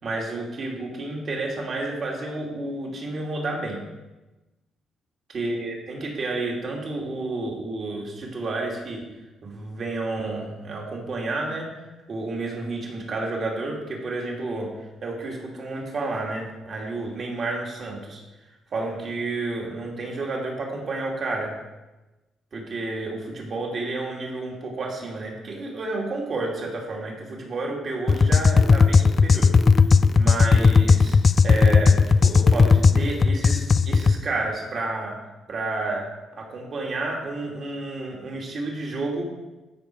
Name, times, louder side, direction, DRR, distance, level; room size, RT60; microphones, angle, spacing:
voice 1, 0.0-3.8 5.3-9.1 9.4-11.7 12.1-18.2 18.7-21.6 22.5-29.6 29.8-31.2 31.4-35.2 35.5-39.2, right 2 dB, 50° right, -1 dB, 2.6 m, -30 dB
sound 1, 28.1-34.2, left 4 dB, 40° left, 0.3 m, -16 dB
13.5 x 5.0 x 4.6 m, 1.1 s
cardioid pair, 90°, 0 cm